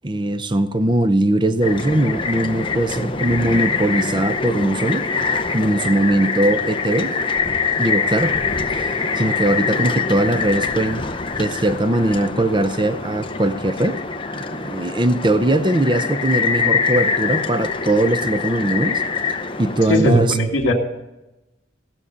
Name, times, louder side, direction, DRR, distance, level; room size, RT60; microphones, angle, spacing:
voice 1, 0.0-5.1 5.5-7.2 7.8-8.3 8.7-11.0 11.4-14.0 14.5-19.0 19.6-20.4, right 1 dB, 25° right, 0.7 m, -20 dB
sound 1, 1.6-19.9, left 5 dB, 25° left, 0.7 m, -24 dB
voice 2, 19.9-20.7, equal, 70° left, 2.3 m, -18 dB
17.0 x 7.1 x 8.1 m
head